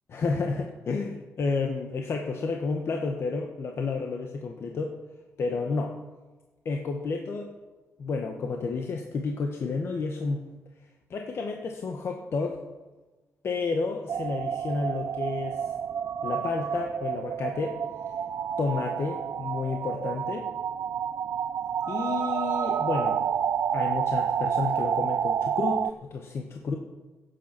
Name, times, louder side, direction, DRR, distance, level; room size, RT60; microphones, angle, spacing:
voice 1, 0.1-5.0 5.4-6.0 6.6-7.5 8.0-10.4 11.1-12.6 13.4-15.7 16.2-17.8 18.6-20.5 21.9-23.2 23.7-26.8, left 4 dB, 55° left, 2 dB, 1.4 m, -31 dB
sound 1, 14.1-25.9, right 8 dB, 55° right, 0.3 m, -29 dB
16.5 x 8.3 x 6.0 m, 1.2 s
cardioid pair, 105°, 5 cm